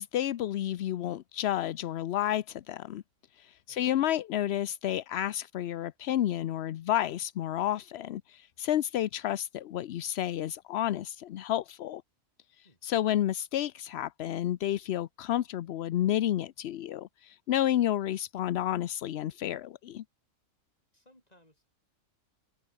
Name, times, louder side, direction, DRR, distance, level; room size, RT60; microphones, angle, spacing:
voice 1, 0.0-3.0 3.4-12.0 12.8-20.0, left 12 dB, 60° left, 0.7 m, -31 dB
voice 2, 3.7-4.0 12.6-12.8 20.9-21.7, left 1 dB, 30° left, 8.1 m, -63 dB
open air
omnidirectional pair, 1.4 m